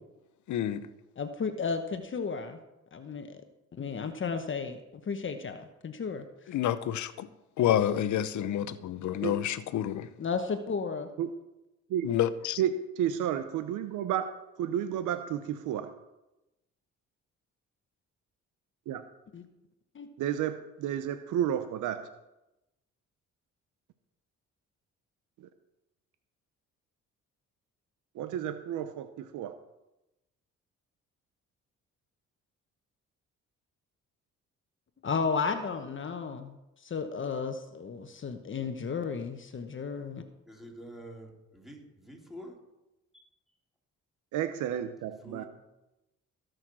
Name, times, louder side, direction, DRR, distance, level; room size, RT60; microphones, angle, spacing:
voice 1, 0.5-0.9 6.5-7.3 7.6-10.1 12.0-12.6, left 11 dB, 75° left, 0.8 m, -28 dB
voice 2, 1.2-2.6 2.9-3.4 3.8-6.6 10.2-11.1 19.3-19.4 19.9-20.1 35.0-40.2, left 5 dB, 40° left, 1.1 m, -34 dB
voice 3, 12.6-15.9 18.9-19.0 20.2-22.1 25.4-25.5 28.1-29.5 44.3-45.4, right 10 dB, 85° right, 0.8 m, -32 dB
voice 4, 40.5-42.6 43.1-43.3 45.2-45.5, equal, ahead, 3.3 m, -47 dB
17.5 x 6.5 x 6.2 m
cardioid pair, 90°, 30 cm